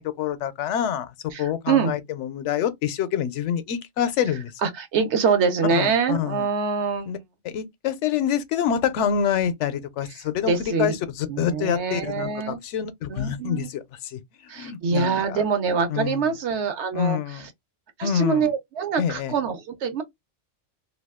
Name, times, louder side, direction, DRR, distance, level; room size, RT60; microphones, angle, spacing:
voice 1, 0.0-4.5 5.7-6.5 7.1-7.2 7.4-15.4 15.9-16.3 16.9-17.5 18.0-18.5 19.0-19.3, left 9 dB, 80° left, 0.9 m, -27 dB
voice 2, 1.3-1.9 4.6-7.2 10.4-10.9 11.3-12.6 13.1-13.7 14.5-17.5 18.0-20.0, right 5 dB, 70° right, 1.0 m, -25 dB
2.5 x 2.3 x 3.5 m
omnidirectional pair, 1.2 m